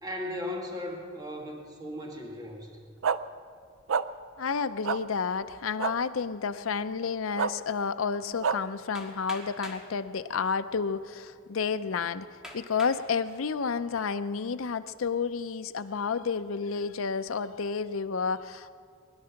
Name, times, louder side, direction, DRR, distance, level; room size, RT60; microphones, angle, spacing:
voice 1, 0.0-2.7, left 1 dB, 20° right, 0 dB, 1.8 m, -37 dB
sound 1, 3.0-3.2 3.9-4.0 4.8-5.0 5.8-5.9 7.4-7.5 8.4-8.6, right 6 dB, 70° right, 0.4 m, -26 dB
voice 2, 4.4-18.7, left 5 dB, 80° left, 11 dB, 0.6 m, -31 dB
Hammer, 8.9-9.9 10.8-10.9 11.5-11.6 12.4-13.0 13.6-14.1, left 1 dB, 5° right, 1.7 m, -44 dB
20.5 x 11.5 x 5.8 m, 2.2 s
head